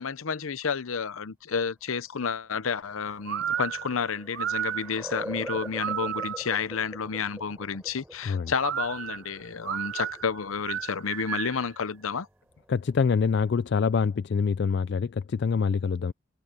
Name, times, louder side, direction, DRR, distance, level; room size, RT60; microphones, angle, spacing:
voice 1, 0.0-12.3, left 6 dB, 80° left, 0.7 m, -30 dB
sound 1, 2.4-13.8, equal, 10° right, 7.7 m, -46 dB
sound 2, 3.3-6.6 8.6-11.7, right 10 dB, 65° right, 0.3 m, -33 dB
voice 2, 12.7-16.1, left 5 dB, 55° left, 0.3 m, -25 dB
head